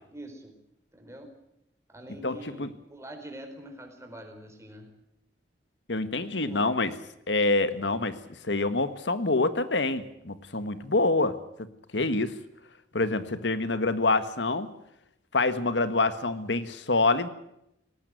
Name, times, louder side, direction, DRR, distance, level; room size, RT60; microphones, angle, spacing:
voice 1, 0.1-0.5 0.9-1.3 1.9-4.9 6.2-6.7, right 1 dB, 15° right, 4 dB, 4.6 m, -45 dB
voice 2, 2.2-2.7 5.9-6.9 7.3-8.2 8.4-11.3 11.9-12.3 12.9-14.7 15.3-17.3, left 3 dB, 80° left, 12 dB, 1.6 m, -26 dB
19.0 x 17.5 x 9.3 m, 0.80 s
head